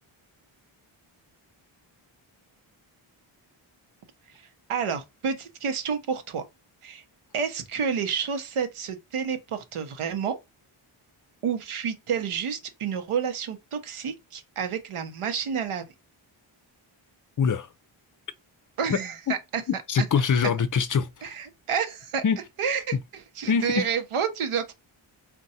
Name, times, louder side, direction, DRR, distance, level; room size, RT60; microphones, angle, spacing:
voice 1, 4.3-6.4 6.8-7.0 7.3-10.4 11.4-15.9 18.8-19.6 20.0-20.1 21.2-22.2 22.6-24.7, right 6 dB, 80° right, 0.8 m, -30 dB
voice 2, 17.4-17.7 19.9-21.3 22.2-22.4 23.5-23.9, left 6 dB, 40° left, 0.5 m, -24 dB
2.6 x 2.2 x 4.0 m
cardioid pair, 60°, 50 cm